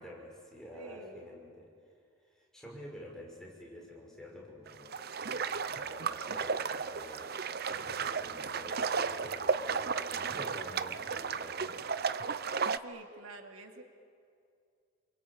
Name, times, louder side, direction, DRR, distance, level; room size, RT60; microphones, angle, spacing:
voice 1, 0.0-1.7 2.2-7.4 7.7-11.8, left 1 dB, 5° left, -2 dB, 6.0 m, -49 dB
voice 2, 0.7-1.3 12.8-13.8, right 3 dB, 85° right, 4 dB, 2.7 m, -48 dB
sound 1, 4.7-12.8, right 5 dB, 45° right, 0.7 m, -34 dB
28.5 x 24.0 x 8.8 m, 2.3 s
head